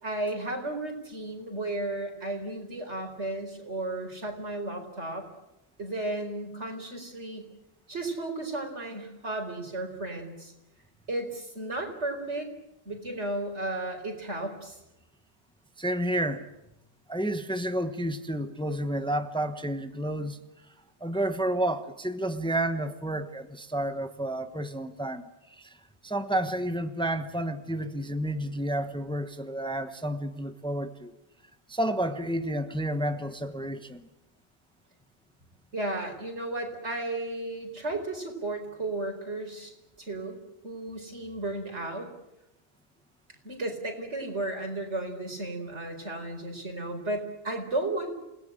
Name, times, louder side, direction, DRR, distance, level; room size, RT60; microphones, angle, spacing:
voice 1, 0.0-5.3 5.8-7.5 7.9-10.5 11.1-12.5 12.8-14.8 35.7-39.7 40.0-42.1 43.4-48.1, right 2 dB, 85° right, 4.9 m, -34 dB
voice 2, 15.8-16.5 17.1-20.4 21.0-25.2 25.6-25.8 26.0-31.1 31.7-34.1, right 1 dB, 5° left, 1.1 m, -30 dB
28.5 x 18.5 x 9.0 m
omnidirectional pair, 1.1 m